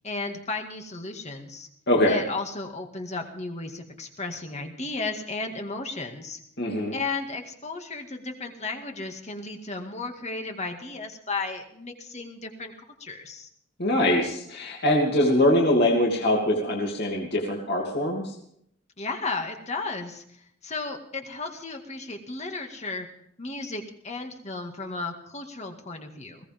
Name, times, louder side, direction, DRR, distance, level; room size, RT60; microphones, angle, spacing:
voice 1, 0.0-1.7 2.1-6.4 6.9-12.7 13.0-13.5 19.0-20.2 20.6-23.1 23.4-26.4, left 3 dB, 35° left, 4 dB, 2.1 m, -34 dB
voice 2, 1.9-2.2 6.6-6.9 13.8-18.3, left 1 dB, 50° left, -1 dB, 2.7 m, -23 dB
21.0 x 17.5 x 3.6 m, 0.69 s
head